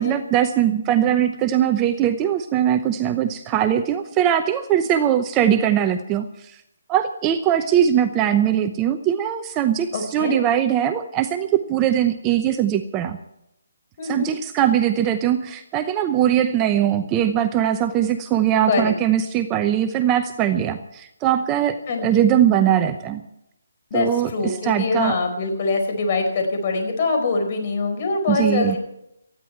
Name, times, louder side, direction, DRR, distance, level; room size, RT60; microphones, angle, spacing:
voice 1, 0.0-6.6 6.9-13.2 14.0-23.2 23.9-25.2 28.3-28.8, right 10 dB, 15° right, 8 dB, 0.7 m, -21 dB
voice 2, 9.9-10.4 14.0-14.3 18.7-18.9 21.9-22.2 23.9-28.8, left 3 dB, 35° left, 5 dB, 4.8 m, -23 dB
19.0 x 14.5 x 4.5 m, 0.81 s
hypercardioid pair, 165°, 0 cm